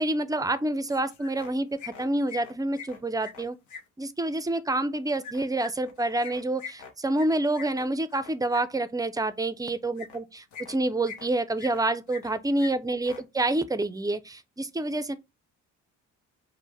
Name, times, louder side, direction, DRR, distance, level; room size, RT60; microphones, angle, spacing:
voice 1, 0.0-3.6 4.0-15.1, right 2 dB, 10° right, 0.4 m, -28 dB
sound 1, 0.9-1.5 1.8-3.8 5.2-8.6 9.9-10.2 10.5-11.3 11.6-12.3 12.6-12.7 13.0-13.2, left 6 dB, 70° left, 1.0 m, -42 dB
5.2 x 2.1 x 3.3 m
cardioid pair, 90°, 30 cm